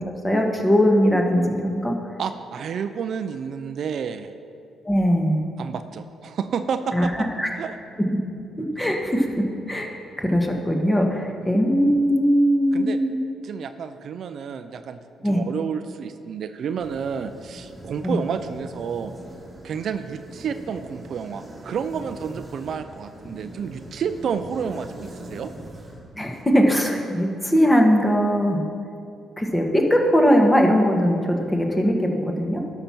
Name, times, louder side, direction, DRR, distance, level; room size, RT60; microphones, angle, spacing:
voice 1, 0.2-1.9 4.8-5.4 6.9-7.5 8.6-9.3 9.7-13.2 15.2-15.4 18.0-18.2 26.2-28.6 29.4-32.1 32.4-32.6, equal, 15° left, 2 dB, 1.4 m, -20 dB
voice 2, 2.2-4.3 5.6-7.3 7.6-7.7 11.5-11.6 12.7-13.0 13.4-15.0 15.2-19.1 19.6-25.5, right 7 dB, 60° right, 9 dB, 0.4 m, -30 dB
sound 1, 16.8-26.4, right 1 dB, 15° right, 1.7 m, -42 dB
12.0 x 5.9 x 6.0 m, 2.5 s
cardioid pair, 90°, 0 cm